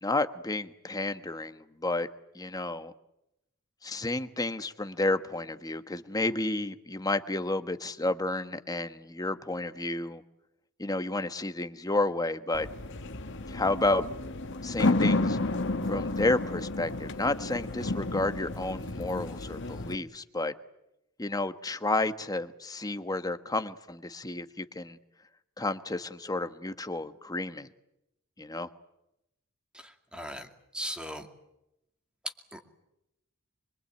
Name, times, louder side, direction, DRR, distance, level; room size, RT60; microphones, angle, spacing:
voice 1, 0.0-2.1 2.3-2.9 3.8-10.2 10.8-12.7 13.5-14.0 14.6-15.4 15.9-20.5 21.2-25.0 25.6-27.7 28.4-28.7, left 2 dB, 20° left, 10 dB, 1.2 m, -31 dB
sound 1, 12.5-20.0, left 2 dB, 60° left, 1.7 m, -31 dB
voice 2, 29.8-30.5 30.7-31.3 32.5-32.6, equal, 5° right, 5 dB, 2.5 m, -38 dB
25.0 x 23.5 x 8.8 m, 0.85 s
head